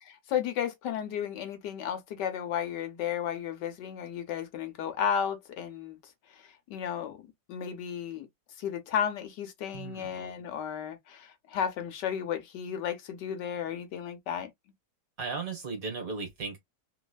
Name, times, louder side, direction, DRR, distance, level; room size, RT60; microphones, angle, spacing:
voice 1, 0.0-7.2 7.5-8.3 8.6-14.5, left 8 dB, 70° left, 1.2 m, -33 dB
voice 2, 9.7-10.1 15.2-16.6, right 4 dB, 50° right, 1.7 m, -36 dB
3.4 x 3.0 x 2.3 m
omnidirectional pair, 2.1 m